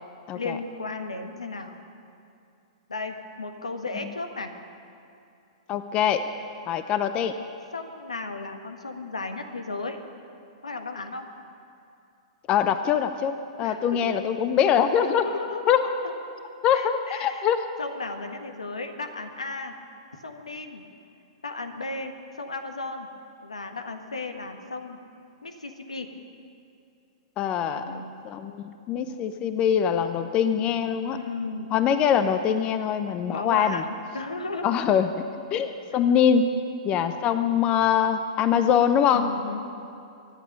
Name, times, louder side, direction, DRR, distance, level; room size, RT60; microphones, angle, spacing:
voice 1, 0.3-1.7 2.9-4.5 7.7-10.0 10.6-11.3 13.6-14.1 15.0-15.7 16.0-16.1 16.7-17.4 17.8-19.7 20.2-20.8 21.4-23.1 23.4-25.0 25.4-26.1 27.6-28.2 31.1-31.7 33.3-34.6 39.1-39.7, left 3 dB, 90° left, 6 dB, 1.5 m, -35 dB
voice 2, 5.7-6.3 6.7-7.3 12.5-15.2 15.7-15.8 16.6-17.7 27.4-27.8 28.2-31.2 31.7-33.8 34.6-35.1 35.5-36.5 36.8-39.3, left 8 dB, 30° left, 9 dB, 0.8 m, -23 dB
24.0 x 11.0 x 5.4 m, 2.6 s
hypercardioid pair, 115°, 3 cm